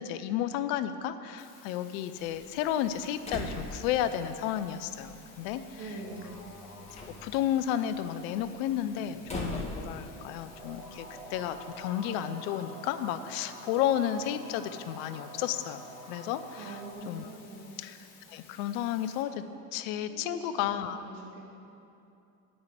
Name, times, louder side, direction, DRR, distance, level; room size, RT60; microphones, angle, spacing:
voice 1, 0.0-6.0 7.2-16.8 17.1-17.3 17.8-18.0 18.3-19.4 19.7-21.0, left 11 dB, 75° left, 12 dB, 0.7 m, -32 dB
sound 1, 1.4-19.2, left 5 dB, 60° left, 2.0 m, -56 dB
Slam, 2.2-11.6, equal, 15° left, 1.9 m, -44 dB
voice 2, 5.7-6.4 16.6-17.7 20.1-21.4, right 2 dB, 80° right, -2 dB, 2.2 m, -43 dB
sound 2, 5.9-7.6 8.9-16.9, right 1 dB, 15° right, 2.6 m, -48 dB
9.4 x 5.4 x 7.9 m, 2.7 s
hypercardioid pair, 80°, 43 cm